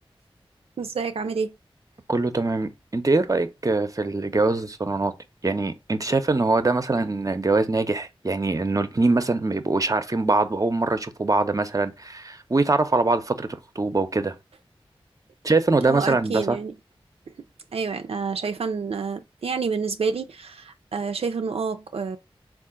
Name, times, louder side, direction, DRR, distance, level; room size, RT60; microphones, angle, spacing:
voice 1, 0.8-1.5 15.8-16.7 17.4-17.5 17.7-22.2, right 5 dB, 80° right, 0.4 m, -28 dB
voice 2, 2.1-5.1 5.4-13.5 13.8-14.3 15.4-16.6, right 3 dB, 35° right, 0.6 m, -23 dB
3.7 x 2.4 x 3.6 m
cardioid pair, 40°, 10 cm